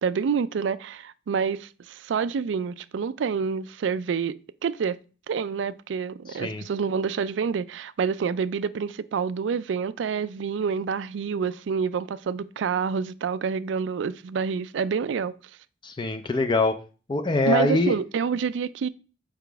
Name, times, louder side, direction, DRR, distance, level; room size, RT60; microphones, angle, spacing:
voice 1, 0.0-4.3 4.6-5.0 5.3-15.3 17.5-18.9, right 6 dB, 80° right, 0.4 m, -27 dB
voice 2, 6.3-6.6 15.8-16.7 17.1-18.0, left 2 dB, 25° left, 0.4 m, -23 dB
6.7 x 5.0 x 3.3 m
head